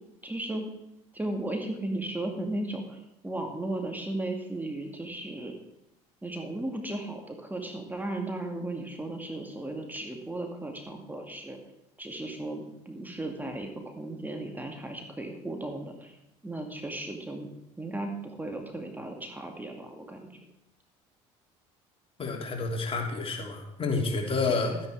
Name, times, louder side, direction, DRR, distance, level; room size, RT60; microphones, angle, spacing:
voice 1, 0.2-0.7 1.1-5.5 6.2-11.6 12.0-16.2 16.4-17.5 17.8-20.4 24.5-24.8, right 1 dB, 10° right, 3 dB, 2.1 m, -35 dB
voice 2, 22.2-24.7, left 3 dB, 35° left, 1 dB, 3.0 m, -29 dB
12.0 x 10.0 x 4.7 m, 0.83 s
hypercardioid pair, 65°, 16 cm